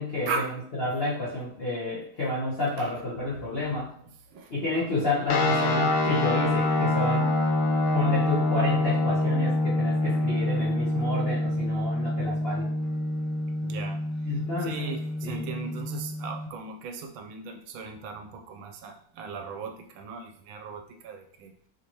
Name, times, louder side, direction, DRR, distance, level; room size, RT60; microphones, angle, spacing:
voice 1, 0.0-3.9 4.5-7.3 7.9-12.7 14.2-14.9 15.2-15.5, left 2 dB, 45° left, -7 dB, 0.8 m, -30 dB
sound 1, 5.3-16.5, left 1 dB, 75° left, 1.4 m, -26 dB
voice 2, 13.6-14.0 14.6-21.5, right 4 dB, 80° right, 4 dB, 1.3 m, -37 dB
5.0 x 2.8 x 2.9 m, 0.62 s
omnidirectional pair, 2.2 m